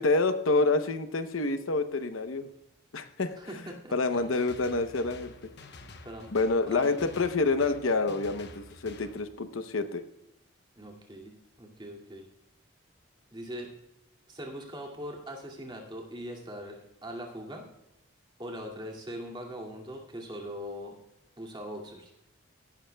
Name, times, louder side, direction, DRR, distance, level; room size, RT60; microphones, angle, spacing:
voice 1, 0.0-2.5 2.9-3.4 3.9-5.3 6.3-10.0, left 3 dB, 75° left, 9 dB, 0.8 m, -27 dB
voice 2, 3.4-3.9 6.0-6.3 6.7-6.9 10.7-12.3 13.3-13.7 14.3-17.7 18.4-21.0 21.4-22.1, equal, 20° right, -1 dB, 2.3 m, -41 dB
sound 1, 4.2-9.2, left 2 dB, 55° left, 1.0 m, -49 dB
16.0 x 12.0 x 2.3 m, 0.86 s
head